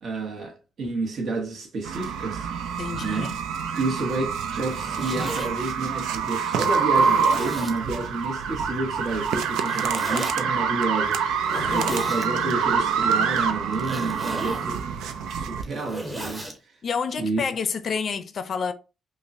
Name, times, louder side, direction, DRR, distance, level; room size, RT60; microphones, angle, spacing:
voice 1, 0.0-2.5 3.0-3.3 3.7-11.2 11.7-14.8 15.3-16.8 17.2-17.4, right 3 dB, 55° right, 1.0 m, -30 dB
sound 1, 1.8-15.6, right 6 dB, 85° right, 0.4 m, -26 dB
voice 2, 2.8-3.4 11.5-12.5 16.8-18.7, left 6 dB, 50° left, 0.5 m, -30 dB
Zipper (clothing), 4.6-5.5 6.2-6.3 6.9-7.8 9.6-10.3 11.4-12.3 13.7-14.7 15.5-16.6, right 1 dB, 20° right, 1.0 m, -34 dB
5.1 x 2.1 x 2.6 m
cardioid pair, 90°, 0 cm